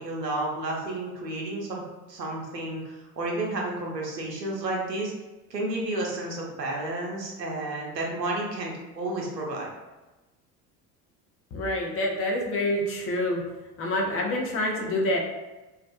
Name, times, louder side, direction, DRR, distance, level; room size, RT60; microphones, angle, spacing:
voice 1, 0.0-1.8 2.1-5.1 5.5-9.7, right 2 dB, 90° right, -2 dB, 0.6 m, -31 dB
voice 2, 11.5-13.4 13.8-15.2, left 1 dB, 30° left, 0 dB, 0.5 m, -27 dB
2.3 x 2.2 x 2.4 m, 1.1 s
figure-of-eight pair, 60°, 49 cm